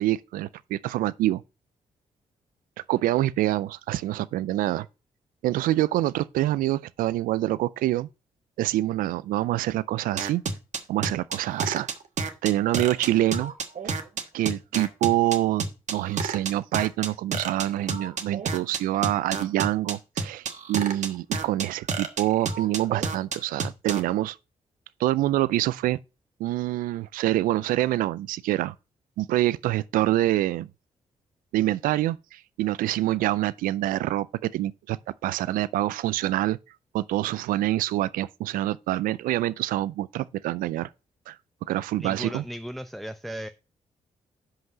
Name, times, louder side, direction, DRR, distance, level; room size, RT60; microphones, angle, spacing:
voice 1, 0.0-1.4 2.9-4.9 5.4-8.1 8.6-10.4 10.9-11.9 12.4-13.5 13.8-13.9 14.3-15.6 15.9-24.4 25.0-26.0 26.4-28.7 29.2-30.7 31.5-35.0 35.2-36.6 36.9-40.9 41.3-41.4 41.7-42.4, right 15 dB, 80° right, 0.4 m, -26 dB
sound 1, 10.2-24.0, right 5 dB, 60° right, 1.4 m, -29 dB
voice 2, 42.0-43.5, equal, ahead, 0.7 m, -36 dB
5.8 x 5.4 x 6.7 m
supercardioid pair, 50°, 14 cm